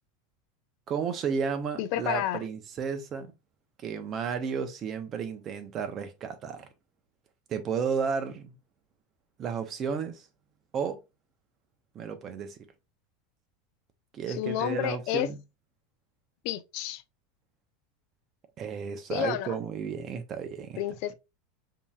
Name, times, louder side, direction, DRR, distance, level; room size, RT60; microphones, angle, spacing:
voice 1, 0.9-3.3 3.8-6.7 7.5-8.6 9.4-10.3 10.7-11.0 11.9-12.6 14.1-15.4 18.6-20.8, right 6 dB, 30° right, 0.8 m, -33 dB
voice 2, 1.8-2.4 14.4-15.3 16.4-17.0 19.1-19.6 20.8-21.1, left 12 dB, 55° left, 0.5 m, -30 dB
5.3 x 2.8 x 2.3 m
supercardioid pair, 140°, 0 cm